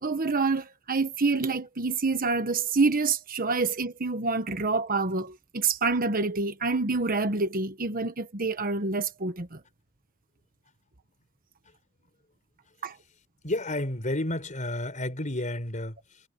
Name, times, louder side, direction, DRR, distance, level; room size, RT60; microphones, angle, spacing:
voice 1, 0.0-9.6 12.8-12.9, right 3 dB, 45° right, 1.3 m, -27 dB
voice 2, 13.4-16.3, left 1 dB, 35° left, 4.8 m, -31 dB
head